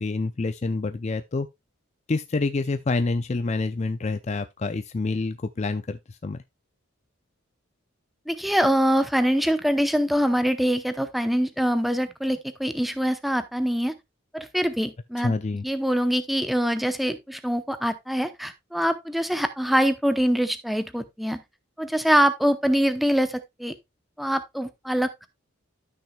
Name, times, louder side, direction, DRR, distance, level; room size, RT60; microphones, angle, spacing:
voice 1, 0.0-1.5 2.1-6.4 15.2-15.6, left 3 dB, 35° left, 0.4 m, -27 dB
voice 2, 8.3-13.9 14.3-15.3 15.6-21.4 21.8-23.7 24.2-25.3, equal, ahead, 0.7 m, -24 dB
13.0 x 6.1 x 2.3 m
head